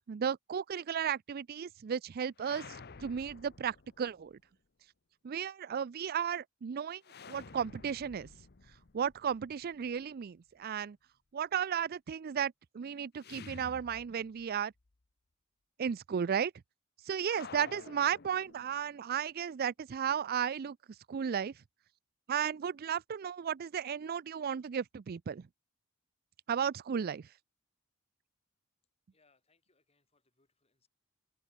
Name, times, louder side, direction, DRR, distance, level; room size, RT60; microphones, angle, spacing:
voice 1, 0.1-4.4 5.2-7.0 7.3-8.3 8.9-11.0 11.3-14.7 15.8-16.5 17.1-20.8 21.1-21.5 22.3-25.5 26.5-27.3, right 8 dB, 50° right, 0.4 m, -34 dB
sound 1, 2.4-4.3 7.0-10.0 13.2-14.6 14.9-15.0 17.2-19.0, left 5 dB, 55° left, 0.9 m, -52 dB
voice 2, 29.1-30.9, left 3 dB, 30° left, 3.8 m, -74 dB
open air
head